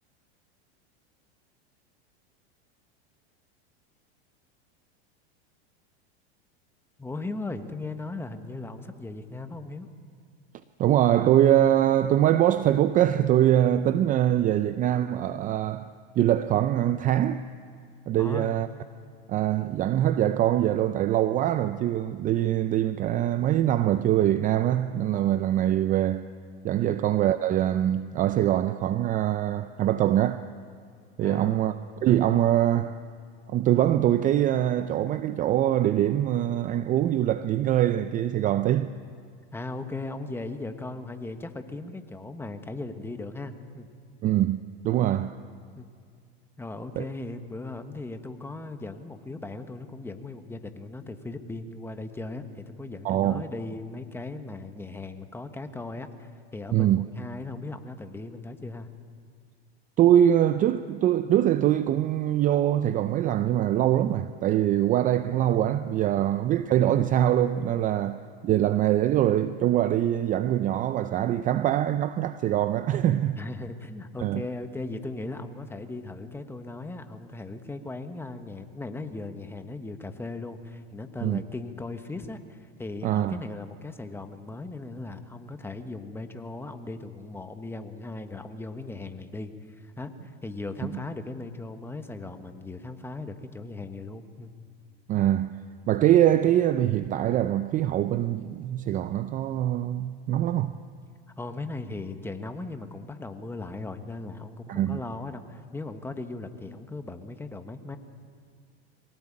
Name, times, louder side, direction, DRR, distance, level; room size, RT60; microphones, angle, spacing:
voice 1, 7.0-9.9 18.2-18.6 26.8-27.0 31.2-31.6 39.5-43.9 45.7-45.9 46.6-58.9 66.2-66.3 73.4-89.5 89.8-94.5 101.4-108.0, left 2 dB, 5° left, 1.2 m, -38 dB
voice 2, 10.8-15.9 16.2-17.5 18.1-18.7 19.3-26.3 26.6-30.5 31.2-31.7 32.0-33.0 33.5-38.9 44.2-45.4 47.0-47.1 53.0-53.4 56.7-57.1 60.0-73.4 74.2-74.4 81.2-81.4 83.0-83.3 95.1-95.6 95.9-100.8 104.7-105.0, right 12 dB, 25° right, 0.5 m, -23 dB
22.5 x 18.0 x 8.6 m
supercardioid pair, 130°, 32 cm